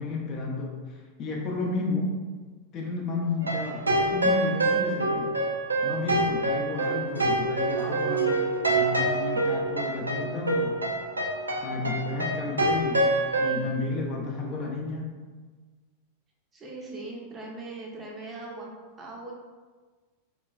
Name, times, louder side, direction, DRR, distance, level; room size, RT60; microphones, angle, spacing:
voice 1, 0.0-2.2 2.7-5.3 5.8-10.9 11.6-15.1, left 3 dB, 35° left, -1 dB, 0.4 m, -32 dB
sound 1, 3.4-13.6, right 2 dB, 80° right, 0.3 m, -26 dB
voice 2, 16.5-18.7 19.0-19.3, right 2 dB, 20° right, -2 dB, 0.5 m, -40 dB
2.9 x 2.1 x 2.4 m, 1.4 s
figure-of-eight pair, 90°, 0 cm